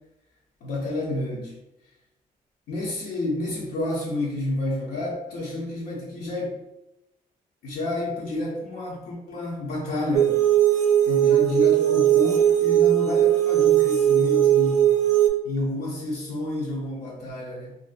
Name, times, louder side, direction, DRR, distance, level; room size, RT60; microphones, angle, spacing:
voice 1, 0.6-1.6 2.7-6.6 7.6-10.4 11.0-14.9 15.4-17.7, left 1 dB, 85° left, -4 dB, 0.6 m, -29 dB
sound 1, 10.1-15.3, right 12 dB, 50° right, 0.4 m, -19 dB
2.5 x 2.1 x 2.4 m, 0.89 s
cardioid pair, 120°, 15 cm